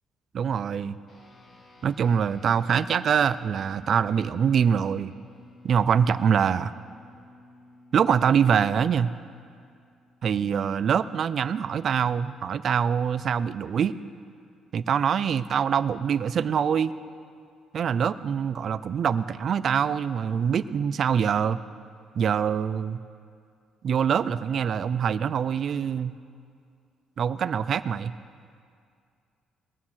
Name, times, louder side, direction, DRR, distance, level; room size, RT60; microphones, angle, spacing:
voice 1, 0.3-1.0 1.8-5.1 5.6-6.7 7.9-9.1 10.2-13.9 14.7-16.9 17.7-21.6 22.2-23.0 23.8-26.1 27.2-28.1, right 7 dB, 50° right, 16 dB, 0.4 m, -24 dB
sound 1, 1.1-10.7, left 2 dB, 45° left, 1.8 m, -53 dB
20.5 x 7.3 x 6.3 m, 2.3 s
cardioid pair, 115°, 0 cm